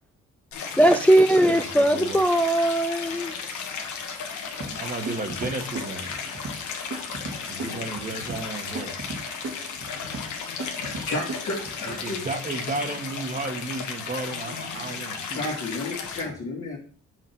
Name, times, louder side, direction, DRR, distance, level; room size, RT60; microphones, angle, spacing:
Stream, 0.5-16.2, left 6 dB, 75° left, 1.4 m, -35 dB
voice 1, 0.8-3.4, right 1 dB, 5° left, 9 dB, 0.4 m, -19 dB
voice 2, 1.4-2.2 4.8-6.1 7.5-9.0 11.8-15.5, right 3 dB, 30° right, 6 dB, 1.4 m, -33 dB
sound 1, 4.6-12.0, right 2 dB, 50° right, 1.9 m, -38 dB
voice 3, 10.9-12.2 15.3-16.8, left 2 dB, 45° left, -6 dB, 2.1 m, -32 dB
6.1 x 3.9 x 5.9 m, 0.42 s
cardioid pair, 90°, 30 cm